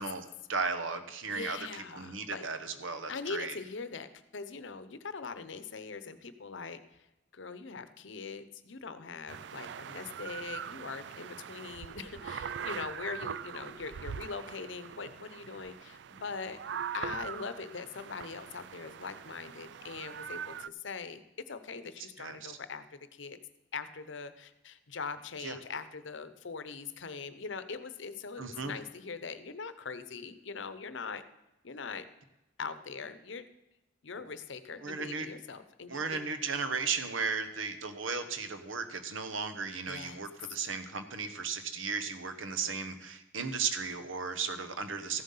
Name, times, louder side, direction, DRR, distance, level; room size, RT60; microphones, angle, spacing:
voice 1, 0.0-1.6 1.9-3.5 22.2-22.6 25.4-25.6 28.4-28.8 34.8-35.3 35.9-45.2, right 5 dB, 90° right, 9 dB, 1.2 m, -35 dB
voice 2, 1.2-2.5 3.1-7.1 7.3-16.6 16.9-23.4 23.7-31.2 31.6-32.1 32.6-33.5 34.0-36.2 39.9-40.2 42.6-42.8, left 5 dB, 75° left, 12 dB, 0.8 m, -42 dB
sound 1, 9.3-20.7, right 8 dB, 60° right, 0.3 m, -42 dB
14.5 x 7.6 x 5.6 m, 0.94 s
head